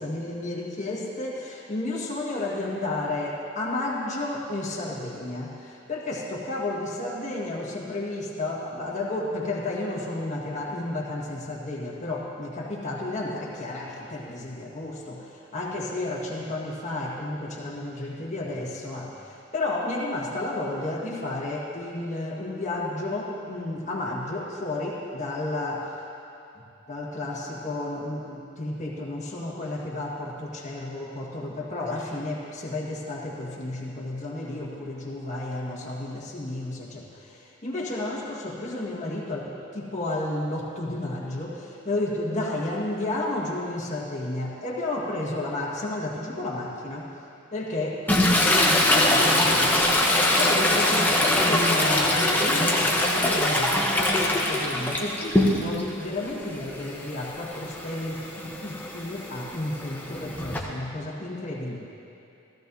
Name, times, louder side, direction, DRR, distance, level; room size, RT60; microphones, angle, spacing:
voice 1, 0.0-25.9 26.9-47.1 47.5-49.8 50.4-61.8, left 2 dB, 35° left, -4 dB, 1.6 m, -32 dB
Toilet flush, 48.1-55.9 56.3-60.6, left 1 dB, 10° left, 0.9 m, -23 dB
16.0 x 14.5 x 2.7 m, 2.7 s
head